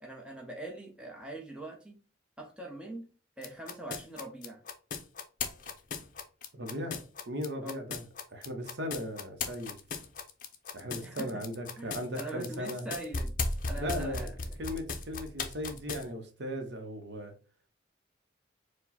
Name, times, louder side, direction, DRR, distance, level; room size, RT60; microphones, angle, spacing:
voice 1, 0.0-1.9 2.4-3.1 3.4-4.6 7.6-7.7 11.0-11.4 11.8-13.3 13.7-14.4, right 2 dB, 5° right, 0 dB, 0.9 m, -42 dB
sound 1, 3.4-16.0, left 4 dB, 45° left, 0.6 m, -36 dB
voice 2, 6.5-8.0 8.3-9.8 10.7-12.8 13.7-14.3 14.6-17.3, equal, 65° right, 5 dB, 0.8 m, -37 dB
4.7 x 2.2 x 4.1 m, 0.36 s
head